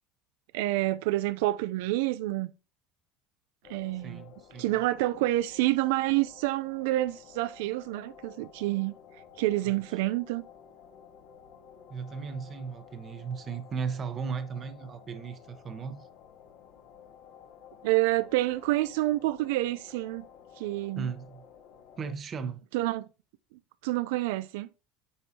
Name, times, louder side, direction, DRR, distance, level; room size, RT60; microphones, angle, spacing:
voice 1, 0.5-2.5 3.7-4.2 4.6-8.9 9.4-10.4 17.8-20.3 20.6-21.1 22.7-23.0 23.8-24.7, right 17 dB, 80° right, 0.4 m, -28 dB
sound 1, 3.6-22.1, left 8 dB, 55° left, 1.6 m, -53 dB
voice 2, 4.0-4.7 9.6-10.0 11.9-16.1 20.9-21.4 22.0-22.6, right 6 dB, 25° right, 0.9 m, -36 dB
9.5 x 5.4 x 2.8 m
cardioid pair, 155°, 0 cm